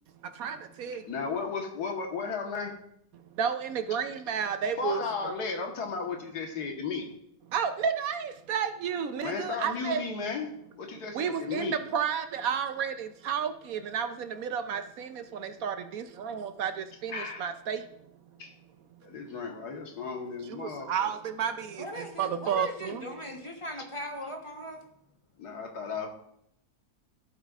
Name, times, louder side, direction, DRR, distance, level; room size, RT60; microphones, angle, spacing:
voice 1, 0.2-1.1 3.2-5.0 7.5-10.0 11.1-17.9 20.5-23.2, right 7 dB, 70° right, 9 dB, 1.0 m, -32 dB
voice 2, 1.1-2.8 4.8-7.1 9.2-11.8 17.1-17.5 18.4-18.5 19.0-21.1 25.4-26.1, left 5 dB, 75° left, 2 dB, 1.9 m, -34 dB
voice 3, 21.8-24.8, equal, 20° left, 2 dB, 1.0 m, -38 dB
14.0 x 8.2 x 2.5 m, 0.73 s
omnidirectional pair, 1.7 m